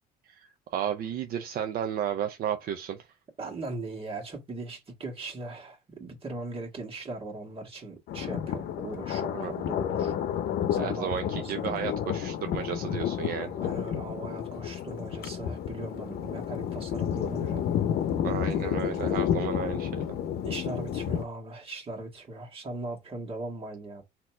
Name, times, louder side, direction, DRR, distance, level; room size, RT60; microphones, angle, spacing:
voice 1, 0.7-3.0 9.3-9.5 10.8-13.5 18.2-20.2, right 9 dB, 60° right, 0.6 m, -33 dB
voice 2, 3.4-10.1 10.7-11.8 13.6-17.7 18.9-19.1 20.4-24.0, right 2 dB, 35° right, 1.8 m, -39 dB
Thunder, 8.1-21.2, left 9 dB, 70° left, 0.7 m, -31 dB
4.1 x 2.9 x 4.3 m
cardioid pair, 110°, 17 cm